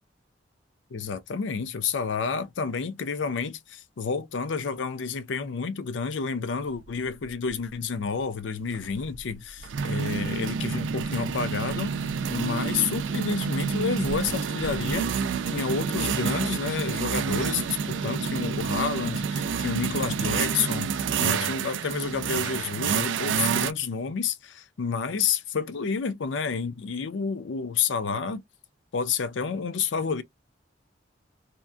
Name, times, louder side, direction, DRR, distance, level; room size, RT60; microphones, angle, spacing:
voice 1, 0.9-15.1 15.5-28.4 28.9-30.2, left 5 dB, 80° left, 0.5 m, -30 dB
sound 1, 6.8-6.9 7.3-7.5 8.7-23.7, right 6 dB, 90° right, 0.4 m, -28 dB
2.8 x 2.5 x 2.3 m
head